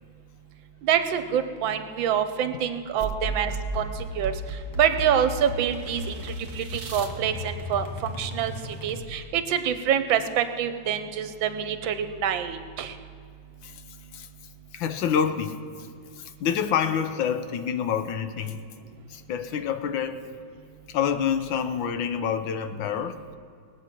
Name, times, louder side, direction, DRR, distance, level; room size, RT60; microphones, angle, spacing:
voice 1, 0.8-4.3 4.8-8.5 8.8-12.9, right 9 dB, 80° right, 10 dB, 1.6 m, -26 dB
sound 1, 3.0-9.4, equal, 10° left, 1.1 m, -35 dB
sound 2, 3.9-7.1, right 5 dB, 55° right, 1.6 m, -46 dB
voice 2, 14.7-15.6 16.2-18.6 19.1-20.2 20.9-23.2, left 8 dB, 80° left, 9 dB, 1.5 m, -27 dB
20.0 x 8.2 x 5.9 m, 2.3 s
omnidirectional pair, 2.1 m